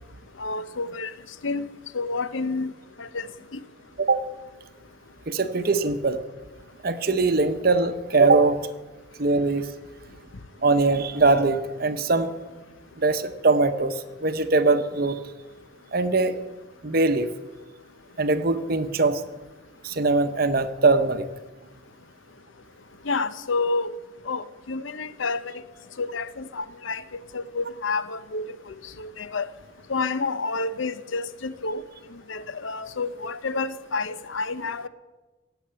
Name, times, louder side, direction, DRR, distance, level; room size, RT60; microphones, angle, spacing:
voice 1, 0.4-1.1 1.4-1.7 1.9-2.7 3.0-3.3 3.5-3.6 23.1-24.0 24.3-25.5 26.0-28.5 29.0-29.5 29.9-31.8 32.3-34.9, left 3 dB, 75° left, 14 dB, 0.7 m, -29 dB
voice 2, 5.3-6.2 6.8-8.6 9.2-9.7 10.6-12.3 13.0-15.2 15.9-16.3 16.8-17.3 18.2-19.2 19.8-21.3, right 3 dB, 50° right, 10 dB, 0.8 m, -21 dB
17.5 x 7.9 x 8.7 m, 1.2 s
head